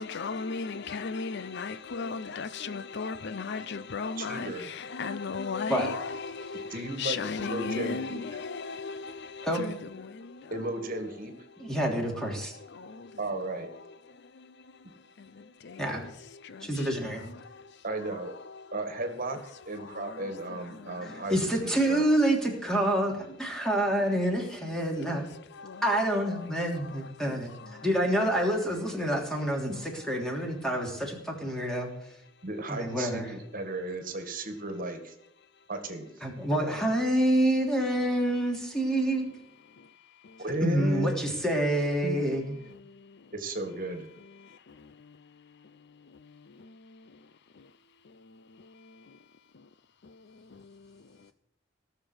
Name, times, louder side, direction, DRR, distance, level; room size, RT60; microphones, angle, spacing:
voice 1, 0.0-4.5 4.9-6.7 7.0-9.7 10.0-10.5 12.7-13.1 15.6-15.8 16.4-16.7 17.4-17.6 20.0-20.1 20.9-21.2 25.1-25.2 25.6-25.8 27.8-27.9, left 4 dB, 60° left, 0.6 m, -35 dB
voice 2, 4.2-4.7 6.7-8.4 10.5-11.3 13.2-13.7 17.8-18.3 18.7-19.4 19.7-22.0 32.4-35.1 35.7-36.1 36.5-36.8 40.4-41.1 42.0-42.2 43.3-44.1, right 2 dB, 45° right, 2.0 m, -35 dB
voice 3, 11.6-12.5 15.8-16.0 16.6-17.2 21.3-25.2 25.8-27.5 27.8-31.9 32.7-33.3 36.2-39.3 40.6-42.4, right 1 dB, 5° left, 3.1 m, -27 dB
17.5 x 6.7 x 8.0 m
head